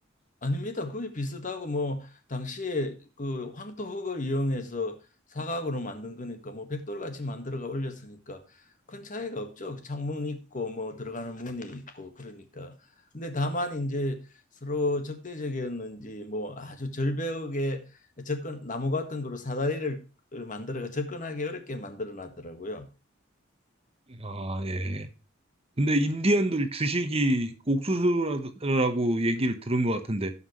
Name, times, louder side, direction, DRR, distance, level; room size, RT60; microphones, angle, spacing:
voice 1, 0.4-5.0 5.3-8.4 8.9-12.7 13.1-14.2 14.6-17.8 18.2-20.0 20.3-22.9, left 2 dB, 40° left, 1.6 m, -33 dB
voice 2, 24.1-25.1 25.8-30.3, right 1 dB, 30° right, 1.1 m, -26 dB
17.0 x 5.8 x 3.1 m
head